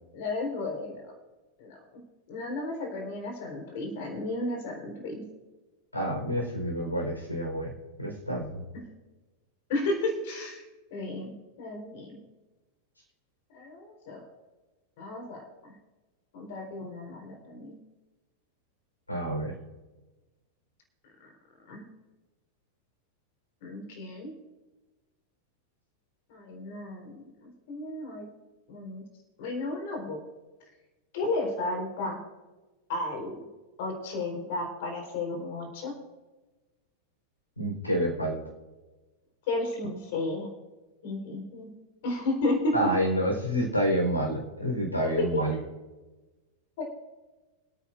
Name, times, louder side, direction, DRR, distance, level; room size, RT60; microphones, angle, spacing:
voice 1, 0.1-1.0 1.6-2.0 2.3-5.2 8.7-8.8 9.7-10.6 10.9-12.2 13.5-14.2 15.0-15.7 16.3-17.8 21.2-21.3 21.7-21.8 23.6-24.3 26.3-28.3 28.7-29.0 29.4-30.2 31.1-32.2 32.9-33.4 33.8-35.9 39.5-40.5 41.0-41.7 42.0-42.9 45.2-45.4 46.8-46.9, left 2 dB, 50° left, 1 dB, 4.2 m, -33 dB
voice 2, 5.9-7.7 8.0-8.6 19.1-19.5 37.6-38.4 42.7-45.6, equal, 85° left, 1 dB, 4.2 m, -28 dB
27.5 x 9.3 x 2.6 m, 1.2 s
figure-of-eight pair, 90°, 0 cm